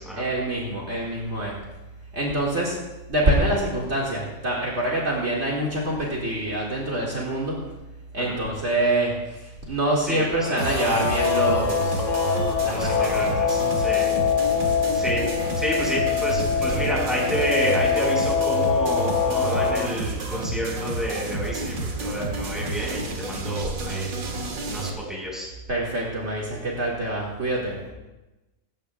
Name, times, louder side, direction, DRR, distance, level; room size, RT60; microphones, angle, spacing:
voice 1, 0.1-1.6 2.1-7.7 8.1-12.0 12.6-13.2 25.7-27.9, right 1 dB, 55° right, -4 dB, 2.3 m, -26 dB
voice 2, 10.1-10.6 12.7-14.0 14.9-15.3 15.6-24.1 24.7-25.5 27.9-28.0, equal, ahead, -4 dB, 5.2 m, -29 dB
Guitar, 10.4-19.9, left 7 dB, 65° left, 1.4 m, -24 dB
sound 1, 10.6-24.9, right 3 dB, 80° right, 1.8 m, -30 dB
18.5 x 16.0 x 2.3 m, 1.0 s
omnidirectional pair, 1.4 m